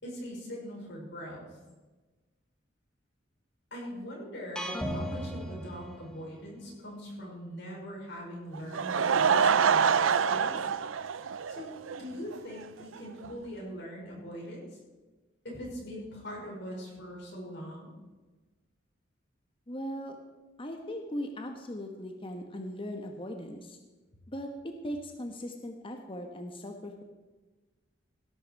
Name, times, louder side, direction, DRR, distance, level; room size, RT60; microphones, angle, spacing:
voice 1, 0.0-1.5 3.7-10.7 11.5-11.7 12.0-14.8 15.4-17.9, equal, 65° left, -2 dB, 5.6 m, -42 dB
sound 1, 4.6-6.6, equal, 5° left, 1.7 m, -36 dB
Laughter / Crowd, 8.5-12.0 12.3-12.4 13.0-13.1 13.2-13.3, right 6 dB, 85° right, 0.6 m, -26 dB
voice 2, 19.7-20.2 20.6-23.8 24.3-27.0, equal, 30° left, 4 dB, 1.3 m, -39 dB
18.0 x 11.5 x 4.7 m, 1.2 s
head